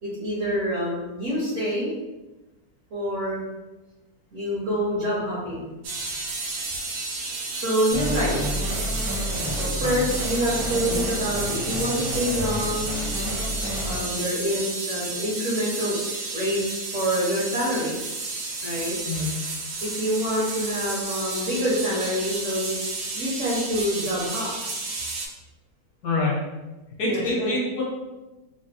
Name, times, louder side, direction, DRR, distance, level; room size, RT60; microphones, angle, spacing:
voice 1, 0.0-1.9 2.9-3.4 4.3-5.7 7.6-8.4 9.5-13.0 13.8-16.1 16.3-18.0 18.6-19.0 19.8-22.8 23.1-24.5 27.0-27.6, equal, 55° right, -7 dB, 0.9 m, -26 dB
sound 1, 5.8-25.3, right 3 dB, 80° right, 1.3 m, -32 dB
sound 2, 7.9-15.4, equal, 15° right, 0.6 m, -30 dB
voice 2, 26.0-26.4 27.0-27.8, left 2 dB, 65° left, -4 dB, 1.1 m, -25 dB
3.3 x 2.2 x 2.7 m, 1.1 s
omnidirectional pair, 2.0 m